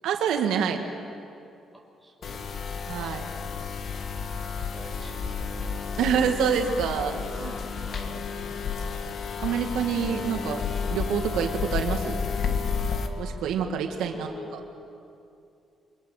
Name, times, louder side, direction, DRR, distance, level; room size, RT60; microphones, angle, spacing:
voice 1, 0.0-0.8 2.9-3.2 6.0-7.6 9.4-10.6 10.9-12.2 13.2-14.3, right 7 dB, 90° right, 4 dB, 1.9 m, -27 dB
voice 2, 1.7-2.8 4.6-5.6 7.9-8.3 13.9-14.8, equal, 5° right, 0 dB, 5.0 m, -45 dB
sound 1, 2.2-13.1, left 5 dB, 50° left, 1.9 m, -31 dB
28.5 x 24.0 x 6.6 m, 2.6 s
cardioid pair, 130°, 0 cm